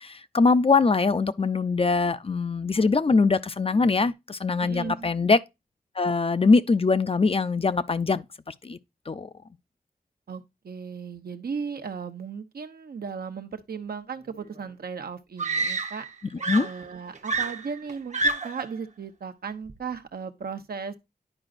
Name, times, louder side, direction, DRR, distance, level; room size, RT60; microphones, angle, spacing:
voice 1, 0.0-5.4 6.0-8.8 9.1-9.3 16.5-16.7, left 4 dB, 35° left, 0.5 m, -22 dB
voice 2, 4.6-5.1 10.3-16.0 16.6-20.9, right 6 dB, 80° right, 0.9 m, -36 dB
Screaming, 14.6-14.7 15.4-16.1 16.4-18.7 19.7-20.0, right 3 dB, 50° right, 0.8 m, -28 dB
11.0 x 4.9 x 2.5 m
wide cardioid pair, 80°, 16 cm